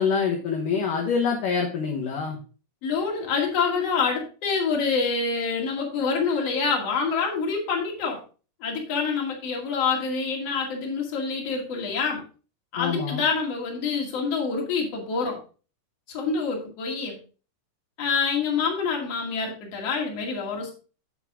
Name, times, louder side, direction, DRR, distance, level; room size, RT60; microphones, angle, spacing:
voice 1, 0.0-2.4 12.8-13.2, left 6 dB, 65° left, 0 dB, 2.6 m, -25 dB
voice 2, 2.8-8.2 8.6-12.2 12.7-15.4 16.1-17.2 18.0-20.7, left 5 dB, 45° left, -1 dB, 2.9 m, -26 dB
8.7 x 8.0 x 3.7 m, 0.37 s
omnidirectional pair, 4.7 m